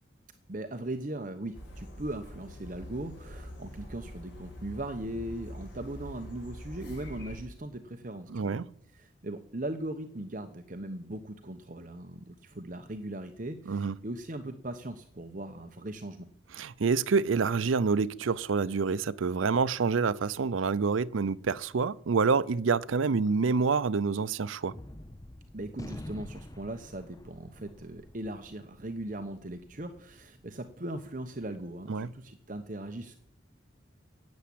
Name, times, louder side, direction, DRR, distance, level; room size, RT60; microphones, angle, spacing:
voice 1, 0.5-8.6 8.9-16.3 25.5-33.2, right 1 dB, 40° right, 0.9 m, -39 dB
sound 1, 1.5-7.4, equal, 70° left, 5.2 m, -45 dB
voice 2, 8.3-8.7 13.7-14.0 16.5-24.7 31.9-32.1, right 5 dB, 85° right, 0.5 m, -27 dB
Gunshot gunfire, 24.7-31.3, left 1 dB, 20° left, 0.6 m, -48 dB
17.0 x 8.4 x 8.5 m
head